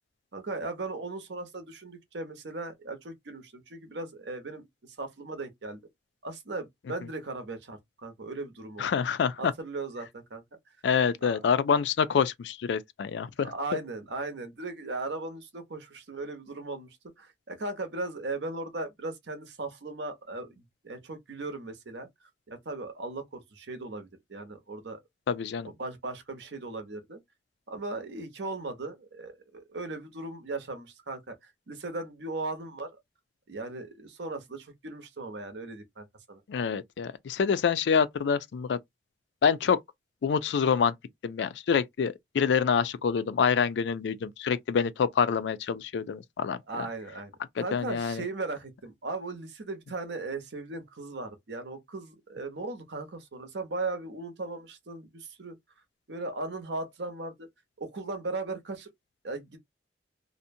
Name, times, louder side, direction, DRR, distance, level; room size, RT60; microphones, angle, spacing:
voice 1, 0.3-5.8 6.2-8.9 9.4-10.4 11.2-11.4 13.4-16.9 17.2-22.1 22.5-25.0 25.6-27.2 27.7-32.9 33.5-36.4 46.7-55.6 56.1-57.5 57.8-58.9 59.2-59.6, right 2 dB, 75° right, 0.8 m, -37 dB
voice 2, 8.8-9.5 10.8-13.5 25.3-25.7 36.5-38.8 39.4-39.8 40.2-40.9 41.2-46.6 47.7-48.2, left 6 dB, 75° left, 0.3 m, -26 dB
2.6 x 2.1 x 2.6 m
head